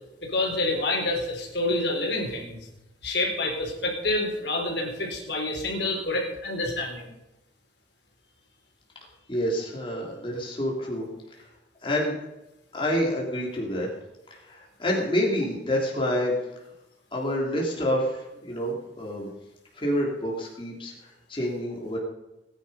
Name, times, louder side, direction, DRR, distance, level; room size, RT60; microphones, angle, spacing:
voice 1, 0.2-2.6 3.0-7.1, left 2 dB, 60° left, 1 dB, 3.8 m, -28 dB
voice 2, 9.3-11.0 11.3-11.5 11.8-12.2 12.7-13.9 14.3-16.4 17.1-19.3 19.7-22.0, equal, 25° left, -2 dB, 3.2 m, -28 dB
20.0 x 10.5 x 5.6 m, 0.94 s
head